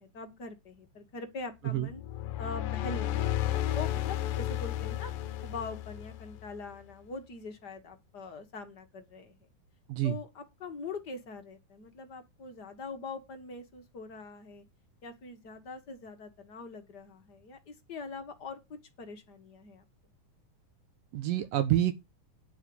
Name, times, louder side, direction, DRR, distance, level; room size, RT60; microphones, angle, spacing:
voice 1, 0.0-2.0 2.4-5.1 5.4-9.3 10.0-14.6 15.0-19.8, left 3 dB, 40° left, 1.5 m, -43 dB
sound 1, 1.9-6.6, left 13 dB, 85° left, 2.6 m, -33 dB
voice 2, 21.1-21.9, right 13 dB, 75° right, 2.7 m, -27 dB
10.5 x 5.1 x 7.8 m
omnidirectional pair, 4.0 m